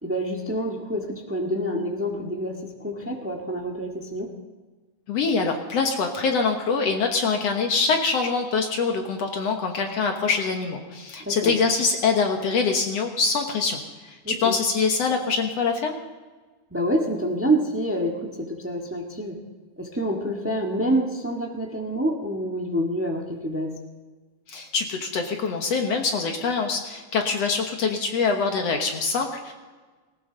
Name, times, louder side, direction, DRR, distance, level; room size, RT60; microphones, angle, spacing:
voice 1, 0.0-4.3 11.2-11.6 14.2-14.6 16.7-19.4 19.8-23.8, right 1 dB, 15° right, 0 dB, 0.4 m, -27 dB
voice 2, 5.1-16.0 24.5-29.5, left 4 dB, 60° left, 3 dB, 2.2 m, -24 dB
19.0 x 19.0 x 3.9 m, 1.3 s
omnidirectional pair, 3.5 m